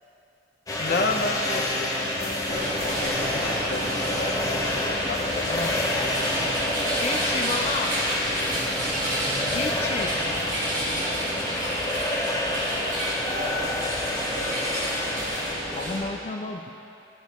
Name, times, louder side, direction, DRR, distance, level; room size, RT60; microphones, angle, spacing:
sound 1, 0.7-15.5, left 1 dB, 20° left, 1.2 m, -28 dB
voice 1, 0.8-4.5 4.8-5.5 5.7-6.5, left 3 dB, 50° left, 2 dB, 0.8 m, -32 dB
sound 2, 2.5-16.0, equal, 50° right, 2.4 m, -30 dB
voice 2, 7.0-7.9 9.5-10.1 15.8-16.7, left 3 dB, 35° left, 3 dB, 0.4 m, -31 dB
voice 3, 9.8-13.3, right 1 dB, 30° right, -2 dB, 1.3 m, -44 dB
16.0 x 6.2 x 3.6 m, 2.7 s
head